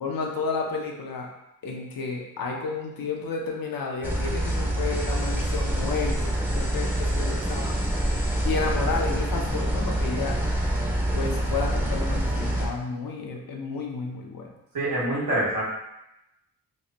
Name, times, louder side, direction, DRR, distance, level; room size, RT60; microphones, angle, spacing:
voice 1, 0.0-1.3 1.6-7.7 8.4-10.4 11.1-14.5, left 4 dB, 75° left, 0 dB, 0.7 m, -31 dB
sound 1, 4.0-12.7, right 1 dB, 5° right, 0.6 m, -26 dB
voice 2, 14.7-15.6, right 1 dB, 80° right, -6 dB, 1.2 m, -25 dB
3.1 x 2.2 x 3.8 m, 0.88 s
wide cardioid pair, 100°, 35 cm